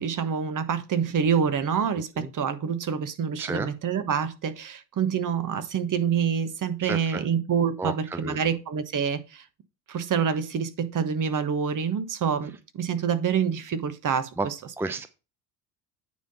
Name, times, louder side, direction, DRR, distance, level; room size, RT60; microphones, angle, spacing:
voice 1, 0.0-9.4 9.9-14.5, right 7 dB, 40° right, 1.3 m, -27 dB
voice 2, 3.4-3.7 6.8-7.3 7.8-8.4 14.4-14.5 14.8-15.1, right 2 dB, 5° right, 0.7 m, -31 dB
9.3 x 3.8 x 5.4 m
hypercardioid pair, 70°, 49 cm